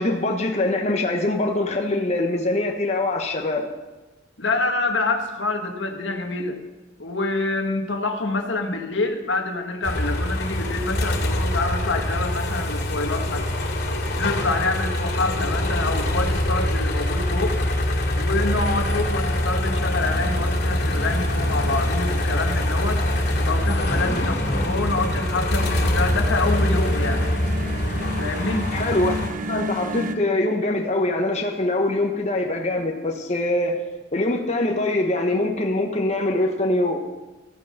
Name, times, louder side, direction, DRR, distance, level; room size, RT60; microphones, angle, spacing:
voice 1, 0.0-3.7 24.1-24.3 28.7-29.1 29.5-33.8 34.1-37.0, left 2 dB, 35° left, 2 dB, 1.1 m, -23 dB
voice 2, 4.4-6.6 7.0-13.4 14.2-17.6 18.1-23.0 23.5-27.3 28.2-28.7, left 3 dB, 80° left, 5 dB, 1.5 m, -26 dB
sound 1, 9.8-29.3, left 1 dB, 55° left, 2.5 m, -24 dB
sound 2, 19.8-30.2, right 1 dB, 45° right, 0.8 m, -34 dB
14.0 x 9.2 x 6.5 m, 1.1 s
head